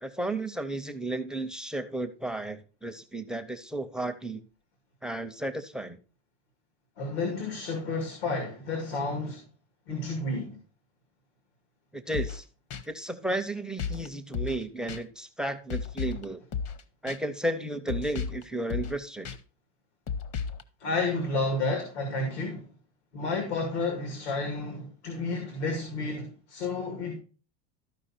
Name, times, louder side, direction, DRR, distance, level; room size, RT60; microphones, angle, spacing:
voice 1, 0.0-4.4 5.0-6.0 11.9-12.4 12.9-16.4 17.0-19.3, right 1 dB, ahead, 0.4 m, -33 dB
voice 2, 7.0-9.4 9.9-10.6 20.8-22.7 23.1-27.1, left 3 dB, 85° left, 2.3 m, -31 dB
sound 1, 12.1-12.4 12.7-12.8 13.8-14.1 14.3-14.6 14.9-15.0 15.7-16.2 16.5-16.8 17.1-17.2 17.9-18.4 18.7-19.0 19.2-19.4 20.1-20.6, left 6 dB, 45° left, 0.9 m, -33 dB
13.0 x 4.9 x 4.3 m
supercardioid pair, 135°, 33 cm